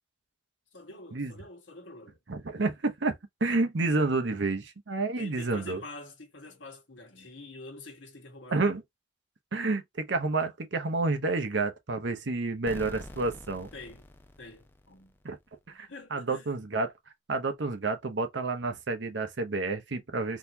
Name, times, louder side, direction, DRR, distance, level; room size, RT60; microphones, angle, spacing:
voice 1, 0.7-2.2 5.2-8.6 13.7-14.1 14.4-15.2 15.9-16.5, left 2 dB, 80° left, 1.4 m, -46 dB
voice 2, 2.3-5.8 8.5-8.8 9.5-13.7 15.2-15.4 15.7-16.9 17.3-20.4, right 3 dB, 70° right, 0.8 m, -29 dB
sound 1, 12.7-15.4, left 1 dB, 10° left, 0.4 m, -47 dB
4.1 x 2.7 x 2.7 m
head